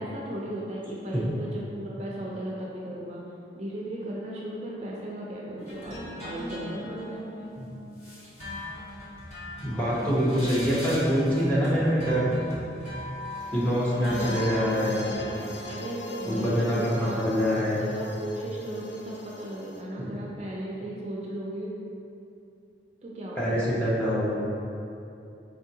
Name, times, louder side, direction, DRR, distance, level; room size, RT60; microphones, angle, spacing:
voice 1, 0.0-3.2 3.5-7.5 15.6-17.2 17.8-21.7 23.0-23.8, right 1 dB, 35° right, -4 dB, 0.4 m, -36 dB
sound 1, 5.6-15.7, left 1 dB, 35° left, 1.0 m, -39 dB
voice 2, 9.6-12.3 13.5-15.0 16.3-17.8 20.0-20.2 23.4-24.3, equal, 5° left, -8 dB, 0.7 m, -25 dB
sound 2, 13.4-19.8, left 1 dB, 80° left, 0.5 m, -40 dB
4.5 x 3.5 x 2.7 m, 2.7 s
head